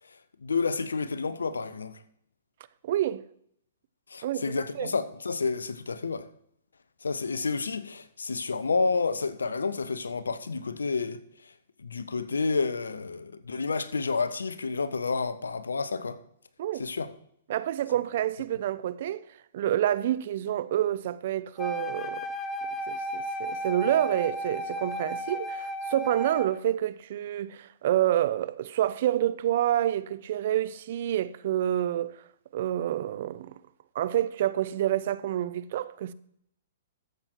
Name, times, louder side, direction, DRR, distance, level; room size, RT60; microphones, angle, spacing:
voice 1, 0.4-1.9 4.1-6.3 7.0-11.2 11.8-16.2 16.8-17.1, left 4 dB, 85° left, 0.9 m, -30 dB
voice 2, 2.8-3.2 4.2-4.4 4.7-4.9 16.6-16.9 17.5-19.2 19.5-22.3 22.9-32.2 32.5-33.5 33.9-36.1, right 12 dB, 55° right, 0.6 m, -28 dB
Wind instrument woodwind instrument, 21.6-26.6, equal, 20° left, 1.0 m, -34 dB
13.5 x 7.8 x 4.5 m
hypercardioid pair, 120°, 0 cm